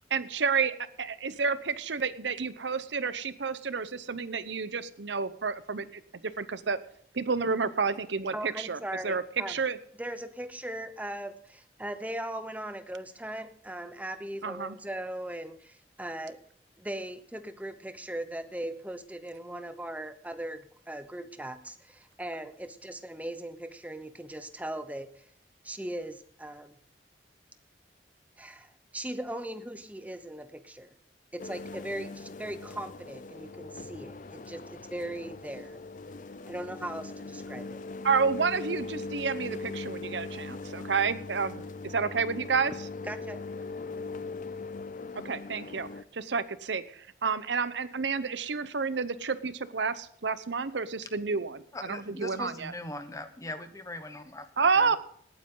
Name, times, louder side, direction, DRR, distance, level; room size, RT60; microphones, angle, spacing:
voice 1, 0.1-6.8 7.1-9.8 14.4-14.8 38.0-42.7 45.1-52.7 54.6-55.0, right 5 dB, 90° right, 14 dB, 0.8 m, -30 dB
voice 2, 8.3-9.6 10.0-16.4 16.8-25.2 25.6-26.7 28.4-30.9 31.3-35.8 36.5-37.8 43.1-43.5, right 1 dB, 10° right, 10 dB, 0.9 m, -39 dB
sound 1, 31.4-46.0, left 3 dB, 45° left, 0.5 m, -40 dB
voice 3, 51.7-54.4 54.8-54.9, left 2 dB, 20° left, 9 dB, 1.2 m, -40 dB
19.0 x 9.4 x 3.8 m, 0.64 s
head